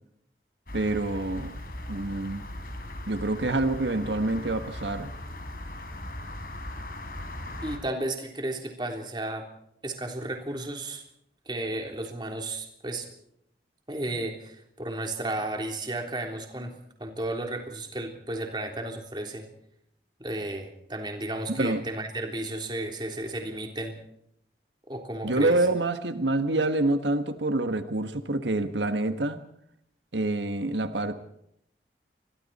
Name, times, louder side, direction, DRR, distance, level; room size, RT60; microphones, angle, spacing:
sound 1, 0.7-7.8, left 1 dB, 55° left, 4.1 m, -39 dB
voice 1, 0.7-1.5 1.9-2.4 3.1-5.1 21.5-21.8 25.2-29.4 30.1-31.1, right 2 dB, 90° right, 8 dB, 1.5 m, -27 dB
voice 2, 7.6-9.5 9.8-11.0 11.5-13.1 13.9-19.5 20.2-24.0 24.9-25.7, right 1 dB, 25° right, 3 dB, 3.5 m, -33 dB
27.5 x 22.5 x 4.3 m, 0.72 s
head